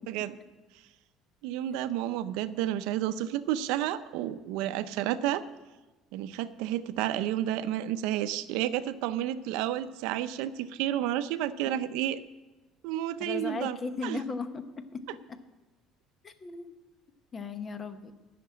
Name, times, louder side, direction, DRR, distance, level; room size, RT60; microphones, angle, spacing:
voice 1, 1.4-5.4 6.1-12.2 12.8-13.8 14.0-14.2, right 12 dB, 85° right, 13 dB, 0.6 m, -31 dB
voice 2, 13.2-15.4 16.2-16.7 17.3-18.1, left 4 dB, 25° left, 10 dB, 0.9 m, -37 dB
12.5 x 6.0 x 9.5 m, 1.1 s
cardioid pair, 145°, 0 cm